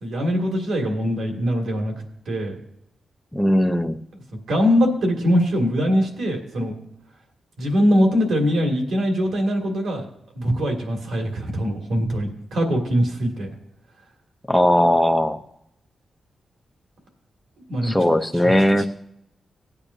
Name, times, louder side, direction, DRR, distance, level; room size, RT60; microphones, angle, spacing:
voice 1, 0.0-1.9 2.3-2.6 4.5-6.7 7.6-10.1 10.3-13.5 17.7-17.9 18.4-18.9, equal, 85° right, 1 dB, 2.3 m, -22 dB
voice 2, 3.3-4.0 14.5-15.4 17.8-18.9, equal, 5° left, 6 dB, 0.6 m, -18 dB
18.0 x 8.6 x 2.7 m, 0.77 s
wide cardioid pair, 140°, 0 cm